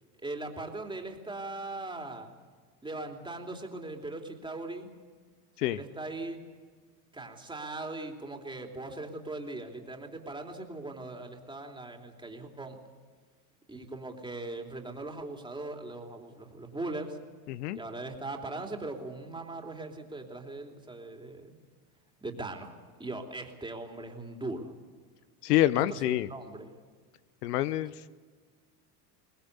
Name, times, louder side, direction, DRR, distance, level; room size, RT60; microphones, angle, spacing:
voice 1, 0.2-2.3 2.8-4.9 5.7-6.4 7.1-12.8 13.7-17.2 17.7-21.6 22.2-24.7 25.7-26.7, right 2 dB, 10° right, 3 dB, 3.2 m, -40 dB
voice 2, 17.5-17.8 25.4-26.3 27.4-27.9, left 14 dB, 85° left, 16 dB, 0.9 m, -26 dB
23.0 x 19.5 x 8.3 m, 1.5 s
supercardioid pair, 115°, 46 cm